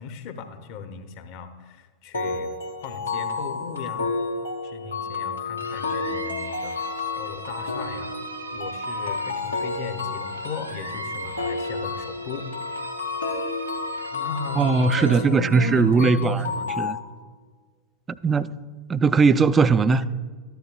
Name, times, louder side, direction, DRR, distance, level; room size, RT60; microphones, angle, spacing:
voice 1, 0.0-2.5 2.8-4.1 4.6-6.8 7.1-8.2 8.5-12.5 13.3-13.4 14.1-16.9 18.2-18.3 19.9-20.1, left 5 dB, 45° left, 0.9 m, -36 dB
sound 1, 2.1-16.9, left 4 dB, 75° left, 1.1 m, -31 dB
sound 2, 5.6-15.2, right 3 dB, 85° right, 2.2 m, -39 dB
voice 2, 14.6-16.4 16.8-17.0 18.1-18.5 18.9-20.1, right 4 dB, 20° right, 0.3 m, -19 dB
13.5 x 10.5 x 2.3 m
figure-of-eight pair, 90°, 0 cm